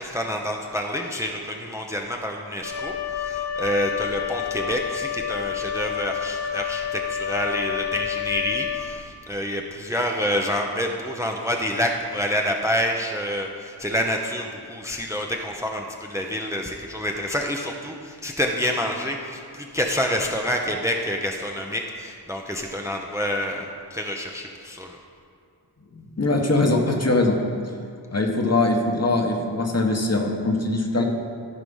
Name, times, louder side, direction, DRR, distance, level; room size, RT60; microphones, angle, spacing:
voice 1, 0.0-25.0, equal, 5° right, 1 dB, 0.6 m, -27 dB
Wind instrument woodwind instrument, 2.6-9.2, left 8 dB, 80° left, 0.9 m, -29 dB
voice 2, 25.9-27.4 28.1-31.0, left 2 dB, 35° left, 2 dB, 1.1 m, -22 dB
14.0 x 4.9 x 5.5 m, 2.3 s
wide cardioid pair, 90°, 42 cm